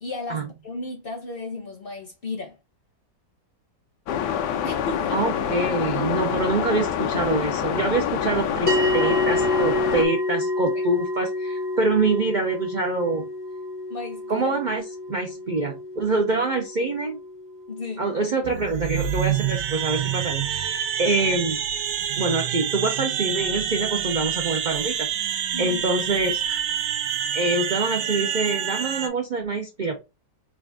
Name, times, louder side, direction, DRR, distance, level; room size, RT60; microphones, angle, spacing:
voice 1, 0.0-2.6 4.6-5.3 10.7-10.8 13.9-14.5 17.7-18.1 25.5-25.8, left 3 dB, 45° left, 0.8 m, -34 dB
sound 1, 4.1-10.1, left 8 dB, 90° left, 1.2 m, -26 dB
voice 2, 5.1-13.3 14.3-14.8 15.1-17.2 18.0-21.6 22.2-25.1 25.6-26.6 27.3-30.0, right 3 dB, 70° right, 0.4 m, -25 dB
sound 2, 8.7-19.2, left 2 dB, 15° left, 0.4 m, -29 dB
sound 3, 18.4-29.1, right 9 dB, 90° right, 1.2 m, -27 dB
3.8 x 2.5 x 3.4 m
omnidirectional pair, 1.8 m